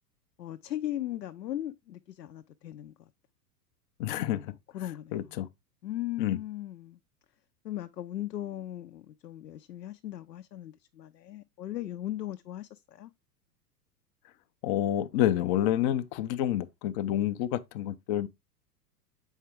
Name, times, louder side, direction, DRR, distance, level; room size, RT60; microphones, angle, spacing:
voice 1, 0.4-3.1 4.3-5.3 5.8-7.0 7.6-13.1, left 13 dB, 80° left, 0.6 m, -38 dB
voice 2, 4.0-4.5 5.1-5.5 6.2-6.4 14.6-18.3, left 12 dB, 35° left, 0.5 m, -28 dB
7.2 x 4.6 x 3.5 m
figure-of-eight pair, 95°, 49 cm